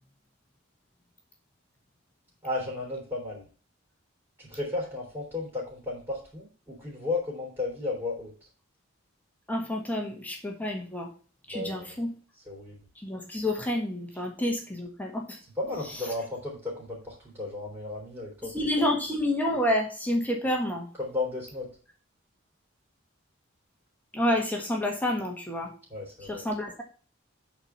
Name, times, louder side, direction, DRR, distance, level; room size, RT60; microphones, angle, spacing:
voice 1, 2.4-3.4 4.4-8.3 11.5-11.9 12.5-12.8 15.6-18.9 21.0-21.7 25.9-26.5, left 2 dB, 15° right, -4 dB, 3.7 m, -34 dB
voice 2, 9.5-11.1 11.5-12.1 13.0-15.4 15.9-16.0 18.4-20.9 24.1-25.7 26.2-26.8, left 1 dB, 10° left, 0 dB, 1.5 m, -29 dB
9.4 x 4.4 x 5.8 m, 0.38 s
head